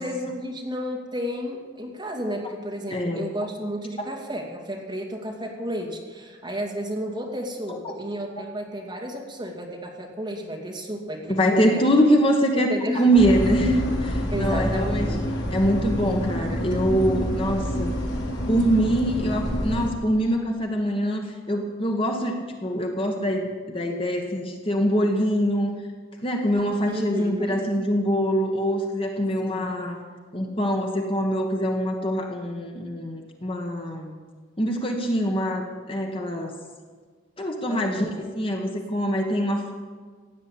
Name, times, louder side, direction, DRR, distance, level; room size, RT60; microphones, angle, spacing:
voice 1, 0.0-11.8 12.5-13.0 14.3-15.1 26.9-27.6 29.4-29.7 37.7-38.1, equal, 20° right, 0 dB, 2.4 m, -32 dB
voice 2, 2.9-3.3 7.7-7.9 11.4-15.1 15.5-17.9 18.5-25.7 26.2-30.0 30.3-34.1 34.6-36.5 37.4-39.7, equal, 25° left, 2 dB, 1.4 m, -24 dB
sound 1, 13.1-19.9, equal, 60° left, 2.9 m, -27 dB
16.5 x 9.5 x 8.5 m, 1.5 s
head